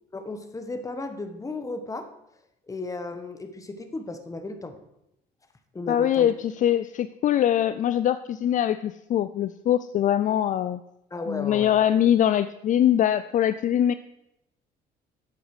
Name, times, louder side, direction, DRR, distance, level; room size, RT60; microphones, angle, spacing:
voice 1, 0.1-2.1 2.7-4.8 5.7-6.3 11.1-11.7, left 2 dB, 20° left, 8 dB, 1.4 m, -35 dB
voice 2, 5.9-10.8 11.3-13.9, left 10 dB, 50° left, 13 dB, 0.5 m, -23 dB
12.5 x 8.1 x 4.9 m, 0.84 s
cardioid pair, 110°, 17 cm